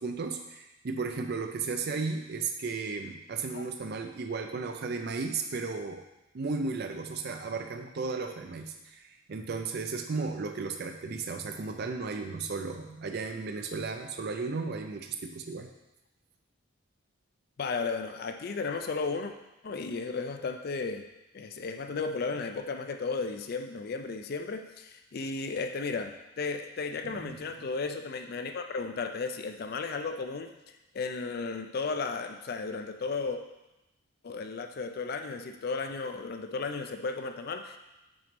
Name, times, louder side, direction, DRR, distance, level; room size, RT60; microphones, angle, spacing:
voice 1, 0.0-6.0 6.3-15.7 27.0-27.4, right 4 dB, 50° right, 5 dB, 0.4 m, -35 dB
voice 2, 17.6-19.3 19.6-21.1 21.3-30.5 30.9-33.4 34.2-37.8, left 4 dB, 45° left, 6 dB, 0.4 m, -34 dB
6.1 x 4.0 x 5.2 m, 0.96 s
head